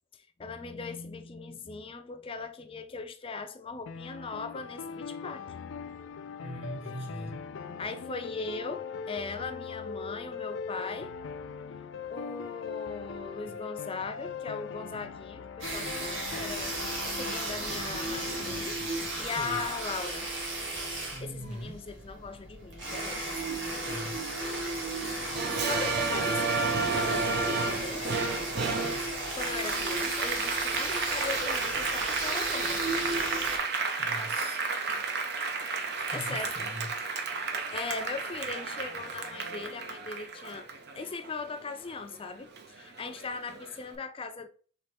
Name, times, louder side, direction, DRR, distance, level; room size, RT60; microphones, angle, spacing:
voice 1, 0.4-5.5 7.8-11.1 12.1-16.8 17.0-18.8 19.2-20.3 21.2-23.4 25.7-28.1 29.4-32.8 36.1-36.5 37.7-40.7 40.9-44.5, left 4 dB, 30° left, 0.4 m, -39 dB
sound 1, 3.9-18.6, left 6 dB, 80° left, 0.4 m, -40 dB
voice 2, 6.4-7.4 13.4-13.5 19.4-19.6 21.1-21.8 23.9-24.3 28.5-29.0 34.0-34.6 36.0-36.9, right 1 dB, 35° right, 1.4 m, -41 dB
sound 2, 15.6-33.6, right 2 dB, 85° right, 1.6 m, -34 dB
Applause, 25.4-42.2 42.6-43.7, right 4 dB, 55° right, 0.6 m, -32 dB
4.3 x 3.1 x 3.3 m
head